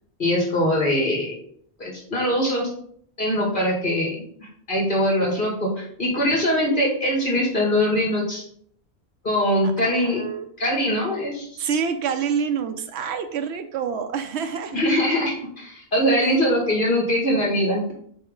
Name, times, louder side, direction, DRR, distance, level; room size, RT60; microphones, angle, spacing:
voice 1, 0.2-1.3 1.8-2.7 3.2-8.4 9.2-10.2 10.6-11.6 14.7-17.9, equal, 50° left, -2 dB, 2.1 m, -22 dB
voice 2, 9.6-10.5 11.6-14.8, right 6 dB, 90° right, 6 dB, 0.9 m, -27 dB
7.4 x 4.6 x 3.7 m, 0.62 s
omnidirectional pair, 1.1 m